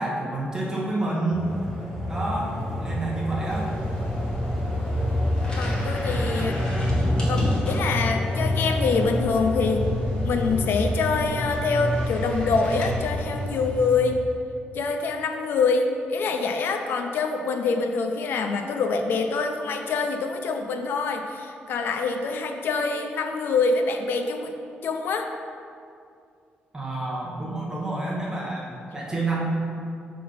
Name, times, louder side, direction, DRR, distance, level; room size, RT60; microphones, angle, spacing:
voice 1, 0.0-1.5 2.1-2.5 2.8-3.7 6.3-6.7 26.7-29.4, right 2 dB, 15° right, -5 dB, 1.1 m, -29 dB
sound 1, 1.3-14.3, left 1 dB, 5° left, 1.6 m, -28 dB
sound 2, 3.5-14.0, left 1 dB, 25° left, 1.4 m, -35 dB
voice 2, 5.6-6.6 7.3-9.9 10.2-14.2 14.7-24.5 24.8-25.3, left 4 dB, 70° left, 5 dB, 0.5 m, -25 dB
6.4 x 3.8 x 5.5 m, 2.4 s
cardioid pair, 130°, 4 cm